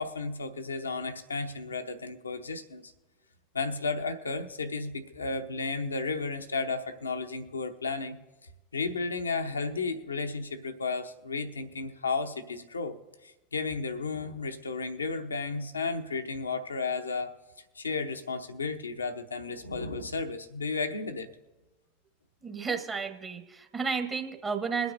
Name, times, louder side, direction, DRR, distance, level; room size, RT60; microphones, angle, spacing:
voice 1, 0.0-2.9 3.5-8.2 8.7-13.0 13.2-17.4 17.8-21.3, left 4 dB, 90° left, 7 dB, 0.8 m, -33 dB
voice 2, 22.4-24.9, right 5 dB, 30° right, 5 dB, 1.2 m, -32 dB
21.5 x 9.4 x 2.6 m, 1.1 s
hypercardioid pair, 85°, 0 cm